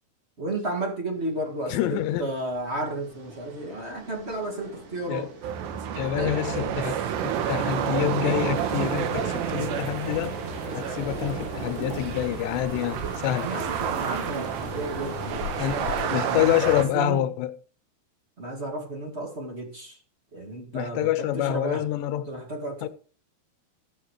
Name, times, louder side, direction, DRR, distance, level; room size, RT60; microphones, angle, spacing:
voice 1, 0.4-5.3 6.2-6.4 6.7-7.0 13.4-17.3 18.4-20.0 20.3-21.8 22.2-22.9, right 2 dB, 30° right, 1.1 m, -33 dB
voice 2, 1.7-2.3 5.1-5.3 5.9-7.0 7.2-10.4 10.8-13.5 15.6-15.8 16.1-17.5 20.7-22.3 22.8-22.9, left 12 dB, 85° left, 3.1 m, -27 dB
sound 1, 1.9-16.3, right 3 dB, 55° right, 3.9 m, -40 dB
sound 2, 5.4-16.9, right 9 dB, 85° right, 3.4 m, -30 dB
sound 3, 8.5-16.0, left 11 dB, 70° left, 2.0 m, -42 dB
15.5 x 6.5 x 5.0 m
omnidirectional pair, 4.8 m